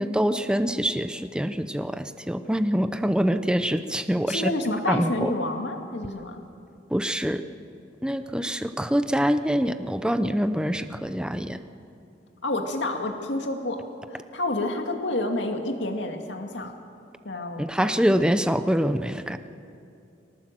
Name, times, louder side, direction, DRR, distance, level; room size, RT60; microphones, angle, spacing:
voice 1, 0.0-4.5 4.9-5.3 6.9-7.4 8.0-11.6 17.6-19.4, equal, 5° right, 10 dB, 0.7 m, -25 dB
voice 2, 4.3-6.4 12.4-13.8 14.1-16.8 17.2-17.9, left 2 dB, 75° left, 3 dB, 2.3 m, -29 dB
24.0 x 18.5 x 7.7 m, 2.6 s
head